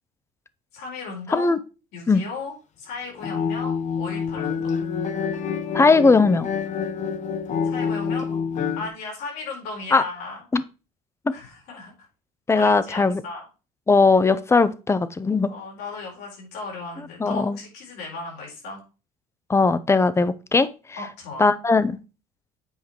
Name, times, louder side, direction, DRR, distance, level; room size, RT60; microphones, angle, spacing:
voice 1, 0.7-1.6 1.9-4.7 7.6-8.4 8.8-10.4 11.3-11.9 12.5-13.5 15.5-18.8 21.0-21.5, left 3 dB, 80° left, 4.7 m, -36 dB
sound 1, 3.1-8.9, left 6 dB, 50° left, 1.2 m, -27 dB
voice 2, 5.7-6.5 9.9-10.0 10.5-10.6 12.5-13.2 13.9-15.5 17.2-17.6 19.5-20.7 21.4-22.0, left 4 dB, 15° left, 0.7 m, -18 dB
8.3 x 5.0 x 4.5 m
cardioid pair, 105°, 16 cm